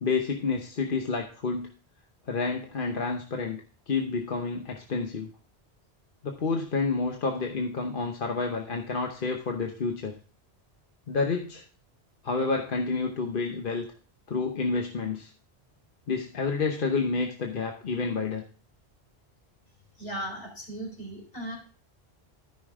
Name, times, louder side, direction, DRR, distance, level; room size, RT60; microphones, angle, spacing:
voice 1, 0.0-1.7 2.3-3.6 3.9-5.3 6.2-10.2 11.1-11.6 12.2-13.9 14.3-15.3 16.1-18.4, left 4 dB, 55° left, 2 dB, 1.1 m, -29 dB
voice 2, 20.0-21.6, right 1 dB, 70° left, 0 dB, 4.0 m, -37 dB
13.5 x 5.7 x 3.6 m, 0.39 s
omnidirectional pair, 1.1 m